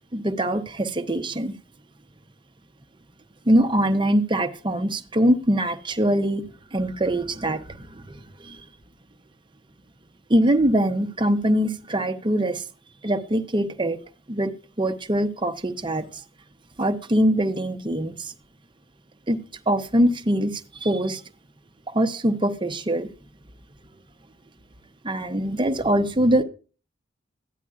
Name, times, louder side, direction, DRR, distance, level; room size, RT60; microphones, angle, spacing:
voice 1, 0.1-1.5 3.5-6.4 6.7-8.6 10.3-12.6 13.0-14.0 14.3-14.5 14.8-16.0 16.8-18.3 19.3-19.4 19.7-21.2 21.9-23.1 25.0-26.4, right 1 dB, 25° right, 7 dB, 0.8 m, -23 dB
13.5 x 9.7 x 2.4 m, 0.36 s
head